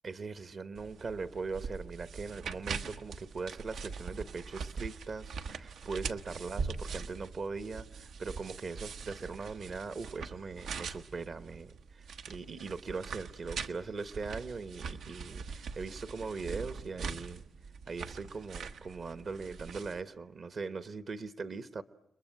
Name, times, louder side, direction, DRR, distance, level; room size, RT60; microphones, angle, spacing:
voice 1, 0.0-17.4 17.9-21.8, right 4 dB, 50° right, 12 dB, 1.0 m, -40 dB
sound 1, 0.7-20.0, right 5 dB, 85° right, 1.1 m, -42 dB
29.5 x 22.0 x 9.1 m, 0.80 s
wide cardioid pair, 115°, 0 cm